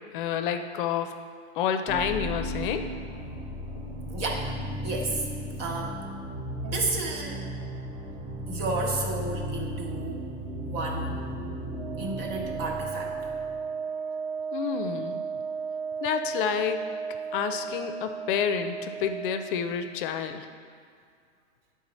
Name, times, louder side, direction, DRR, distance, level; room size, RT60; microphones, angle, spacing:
voice 1, 0.1-1.1 1.5-2.9 14.5-15.2 16.0-16.8 17.3-20.5, left 8 dB, 45° left, 8 dB, 0.5 m, -29 dB
sound 1, 1.9-13.7, equal, 15° right, 0.4 m, -35 dB
voice 2, 4.1-4.5 4.8-5.2 5.6-6.0 6.6-7.4 8.5-10.3 10.6-11.2 12.0-13.1, right 3 dB, 55° right, 0 dB, 1.3 m, -32 dB
Wind instrument woodwind instrument, 11.7-19.5, right 5 dB, 30° right, 1.0 m, -34 dB
8.7 x 3.7 x 4.1 m, 2.2 s
hypercardioid pair, 130°, 36 cm